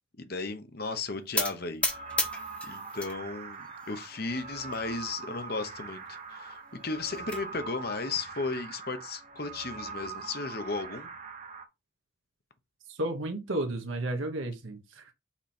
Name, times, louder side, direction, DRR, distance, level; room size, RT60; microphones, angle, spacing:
voice 1, 0.2-1.8 2.6-11.1, left 3 dB, 50° left, 0.9 m, -35 dB
sound 1, 1.4-3.1 3.5-4.2 4.7-4.8 5.1-5.2 5.6-5.7 6.8-7.4, left 2 dB, 5° left, 1.0 m, -33 dB
sound 2, 1.8-11.7, right 4 dB, 35° right, 0.9 m, -42 dB
voice 2, 12.9-15.1, right 1 dB, 70° right, 1.1 m, -33 dB
5.9 x 4.4 x 4.3 m
head